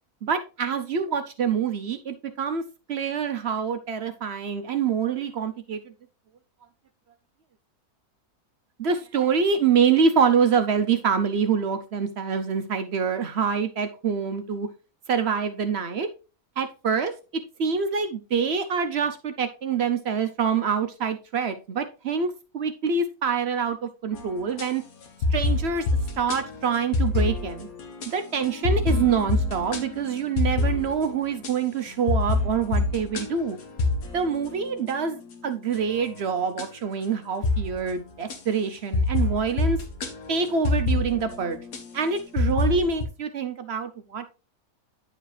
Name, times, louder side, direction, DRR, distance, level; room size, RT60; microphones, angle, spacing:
voice 1, 0.2-2.6 2.9-5.8 8.8-14.7 15.1-16.1 16.6-17.1 17.6-24.8 25.3-25.9 26.2-27.7 28.1-33.6 34.1-39.8 40.3-41.6 41.9-44.3, right 6 dB, 60° right, 8 dB, 0.7 m, -25 dB
sound 1, 24.1-24.7 25.0-31.5 31.9-35.3 35.7-36.2 36.6-36.7 37.4-38.0 38.3-38.4 38.9-43.0, left 3 dB, 70° left, 1.6 m, -27 dB
9.8 x 4.9 x 3.2 m, 0.32 s
omnidirectional pair, 1.6 m